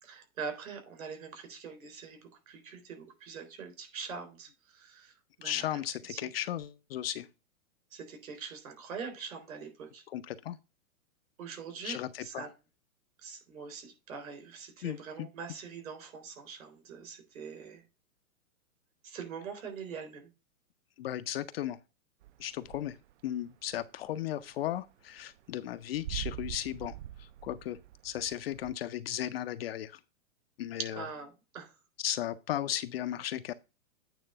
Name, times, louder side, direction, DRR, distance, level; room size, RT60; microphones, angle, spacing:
voice 1, 0.0-5.8 6.1-6.3 7.9-10.0 11.4-12.5 13.2-17.8 19.0-20.3 30.8-31.7, right 6 dB, 70° right, 3.8 m, -43 dB
voice 2, 5.4-7.3 10.1-10.6 11.8-12.5 14.8-15.3 21.0-21.8 22.4-23.0 23.2-26.9 27.2-27.8 28.0-30.0 30.6-31.0 32.0-33.5, left 12 dB, 45° left, 0.5 m, -35 dB
sound 1, 22.2-23.2 23.5-28.7, right 13 dB, 55° right, 0.5 m, -44 dB
9.0 x 3.2 x 6.5 m
hypercardioid pair, 140°, 42 cm